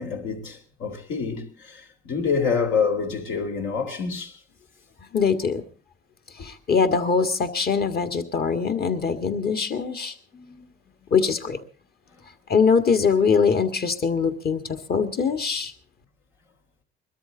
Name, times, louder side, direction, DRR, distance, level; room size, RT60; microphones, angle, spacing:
voice 1, 0.0-4.3 6.4-6.5 10.3-10.6, left 5 dB, 85° left, 3.4 m, -27 dB
voice 2, 5.1-5.6 6.4-10.1 11.1-11.6 12.5-15.7, left 5 dB, 50° left, 1.9 m, -22 dB
22.0 x 13.5 x 3.9 m
cardioid pair, 90°, 20 cm